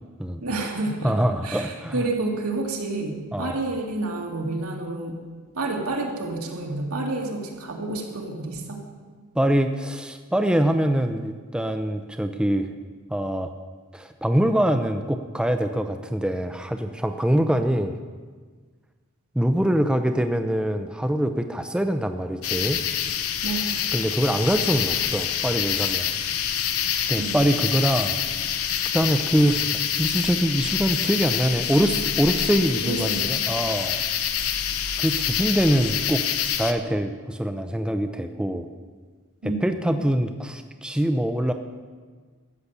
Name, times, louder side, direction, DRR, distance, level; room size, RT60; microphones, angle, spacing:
voice 1, 0.4-1.1 1.4-5.2 5.5-8.8 23.4-23.9 27.2-27.5 32.7-33.4 39.4-39.8, right 2 dB, 80° right, 0 dB, 2.3 m, -29 dB
voice 2, 1.0-2.0 3.3-3.5 9.4-12.7 13.1-13.5 13.9-17.9 19.3-22.8 23.9-26.1 27.1-28.2 28.9-34.0 35.0-36.2 36.6-38.7 39.6-41.5, equal, 5° right, 6 dB, 0.5 m, -24 dB
sound 1, 22.4-36.7, left 9 dB, 75° left, 0.8 m, -26 dB
13.5 x 7.1 x 8.2 m, 1.5 s
head